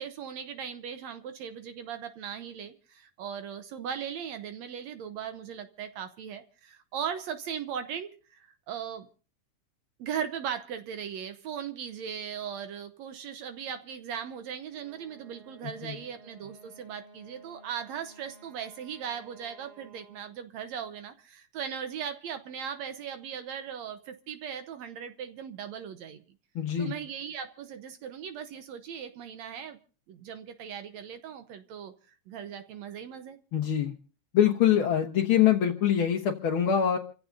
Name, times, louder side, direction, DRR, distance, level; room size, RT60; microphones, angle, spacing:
voice 1, 0.0-9.1 10.0-26.2 26.8-29.8 30.1-31.9 32.3-33.4, right 8 dB, 70° right, 9 dB, 2.0 m, -38 dB
Wind instrument woodwind instrument, 14.7-20.4, right 2 dB, 90° right, 8.4 m, -55 dB
voice 2, 26.5-26.9 33.5-33.9 34.3-37.0, left 9 dB, 55° left, 0 dB, 1.7 m, -24 dB
29.0 x 15.5 x 2.6 m, 0.39 s
omnidirectional pair, 3.5 m